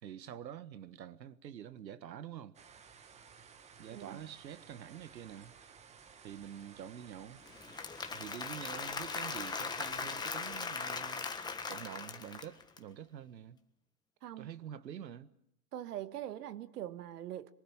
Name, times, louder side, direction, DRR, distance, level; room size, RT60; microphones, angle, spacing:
voice 1, 0.0-2.6 3.8-5.5 6.2-7.4 8.1-11.2 11.7-13.6 14.4-15.3, right 9 dB, 85° right, 1.7 m, -47 dB
sound 1, 2.5-10.6, right 6 dB, 15° right, 1.3 m, -57 dB
voice 2, 3.9-4.3 14.2-14.5 15.7-17.5, right 12 dB, 65° right, 1.7 m, -42 dB
Applause / Crowd, 7.5-12.8, left 4 dB, 10° left, 1.5 m, -39 dB
26.5 x 23.5 x 7.3 m
hypercardioid pair, 150°, 50 cm